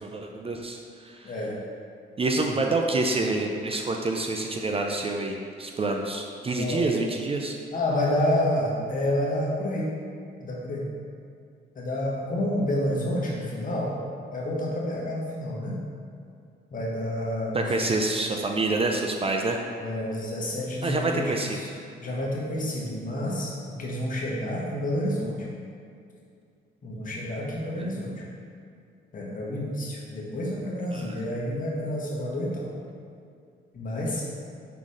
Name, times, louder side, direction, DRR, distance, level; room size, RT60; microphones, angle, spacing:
voice 1, 0.0-1.3 2.2-7.6 17.5-19.6 20.8-21.6 27.7-27.9 30.9-31.1, right 2 dB, 30° right, 2 dB, 0.5 m, -27 dB
voice 2, 1.2-1.5 2.4-2.6 6.5-6.8 7.7-9.9 10.4-10.9 11.7-13.9 14.3-15.8 16.7-17.9 19.8-21.7 22.0-25.3 26.8-28.2 29.1-32.7 33.7-34.2, left 1 dB, 45° left, -4 dB, 1.5 m, -29 dB
5.8 x 3.8 x 5.0 m, 2.4 s
cardioid pair, 90°, 20 cm